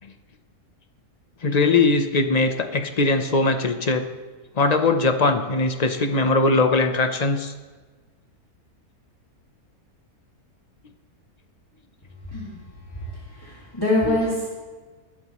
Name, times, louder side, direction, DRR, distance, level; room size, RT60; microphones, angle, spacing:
voice 1, 1.4-4.1 4.6-7.5 14.1-14.2, left 3 dB, 35° left, 7 dB, 0.7 m, -20 dB
voice 2, 13.3-14.5, left 1 dB, 15° left, -5 dB, 2.2 m, -24 dB
20.0 x 11.5 x 3.1 m, 1.4 s
omnidirectional pair, 1.6 m